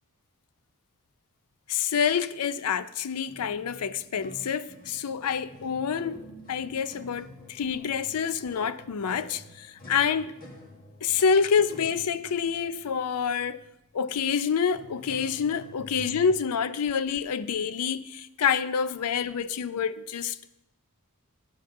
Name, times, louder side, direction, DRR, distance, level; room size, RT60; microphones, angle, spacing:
voice 1, 1.7-10.3 11.0-13.6 13.9-20.4, left 6 dB, 80° left, 0.5 m, -27 dB
sound 1, 3.2-16.3, left 1 dB, 40° left, 1.3 m, -49 dB
11.0 x 9.1 x 2.6 m
head